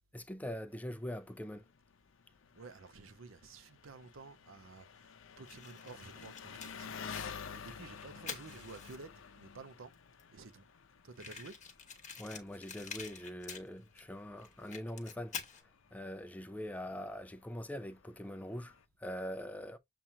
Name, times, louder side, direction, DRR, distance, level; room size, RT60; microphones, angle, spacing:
voice 1, 0.1-1.6 12.2-15.3 15.9-19.8, equal, 10° left, 0.4 m, -43 dB
Engine, 0.7-18.8, left 6 dB, 75° left, 0.6 m, -52 dB
voice 2, 2.6-4.9 5.4-7.0 7.5-9.9 10.3-10.7 11.0-11.5, right 4 dB, 80° right, 0.6 m, -52 dB
Fire, 5.4-9.2 9.9-10.0 10.2-10.3 10.5-10.6 11.1-14.0 14.4-15.6, left 6 dB, 35° left, 1.1 m, -47 dB
7.2 x 2.4 x 2.8 m
head